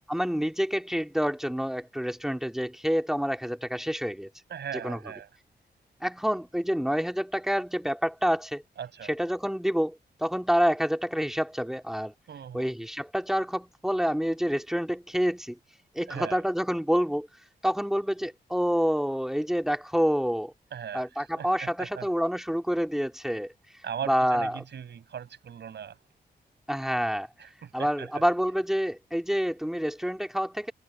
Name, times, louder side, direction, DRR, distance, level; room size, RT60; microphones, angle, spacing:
voice 1, 0.1-4.3 4.7-5.0 6.0-8.6 9.1-12.1 12.5-15.6 15.9-17.3 17.6-20.5 20.9-23.5 24.1-24.6 26.7-27.3 27.7-30.7, equal, ahead, 2.7 m, -27 dB
voice 2, 4.5-5.3 8.8-9.1 12.3-12.7 16.1-16.4 20.7-22.1 23.8-26.0 27.4-28.2, right 8 dB, 85° right, 6.2 m, -39 dB
wide cardioid pair, 105°, 18 cm